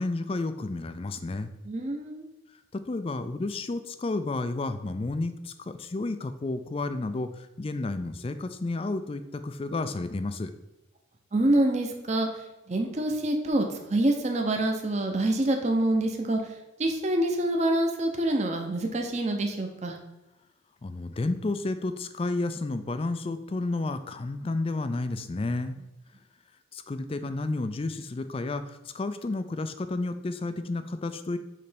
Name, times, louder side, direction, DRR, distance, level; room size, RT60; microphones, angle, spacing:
voice 1, 0.0-1.5 2.7-10.5 20.8-25.8 26.7-31.4, left 2 dB, 30° left, 10 dB, 0.3 m, -31 dB
voice 2, 1.6-2.3 11.3-12.3 12.7-16.4 16.8-20.0, right 1 dB, 35° right, 4 dB, 0.8 m, -26 dB
6.7 x 3.2 x 5.1 m, 0.99 s
head